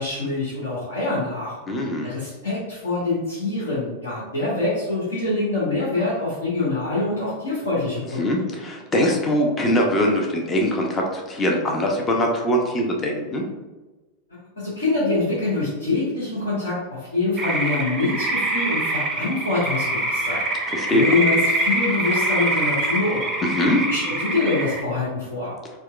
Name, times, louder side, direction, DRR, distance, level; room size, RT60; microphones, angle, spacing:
voice 1, 0.0-1.6 2.0-8.3 14.6-23.3 23.9-25.5, left 2 dB, 70° left, -10 dB, 1.3 m, -25 dB
voice 2, 1.7-2.1 8.2-13.4 20.7-21.1 23.4-23.8, equal, 20° left, 0 dB, 0.7 m, -22 dB
sound 1, 17.4-24.8, right 1 dB, 20° right, 0.5 m, -24 dB
4.3 x 2.3 x 2.4 m, 1.2 s
figure-of-eight pair, 90°, 0 cm